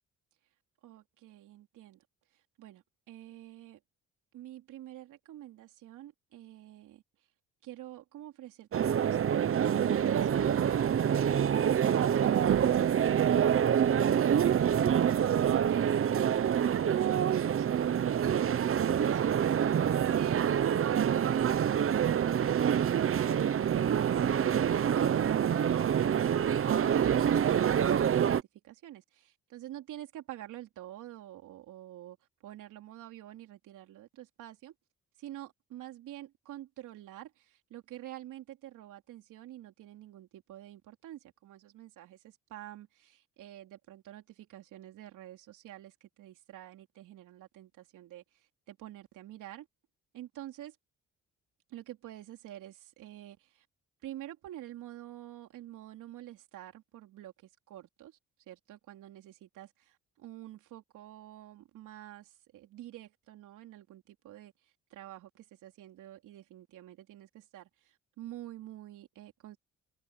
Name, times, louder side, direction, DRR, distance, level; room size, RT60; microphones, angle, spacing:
voice 1, 0.8-2.0 2.3-3.8 4.3-7.0 7.6-15.1 28.6-32.2 32.4-34.7 35.2-49.7 50.1-50.8 51.7-53.7 54.0-58.2 58.5-59.7 60.2-69.6, right 13 dB, 85° right, 3.5 m, -48 dB
sound 1, 8.7-28.4, right 9 dB, 45° right, 0.9 m, -26 dB
cardioid pair, 90°, 30 cm